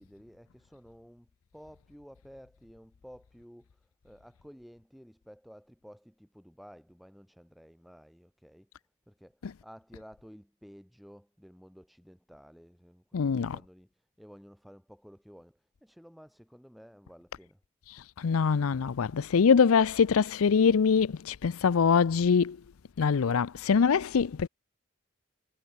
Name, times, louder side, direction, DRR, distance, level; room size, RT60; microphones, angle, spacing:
voice 1, 0.0-8.7 9.1-17.6, equal, ahead, 7.9 m, -53 dB
voice 2, 13.1-13.6 17.9-22.6 23.0-24.5, left 6 dB, 70° left, 0.5 m, -24 dB
head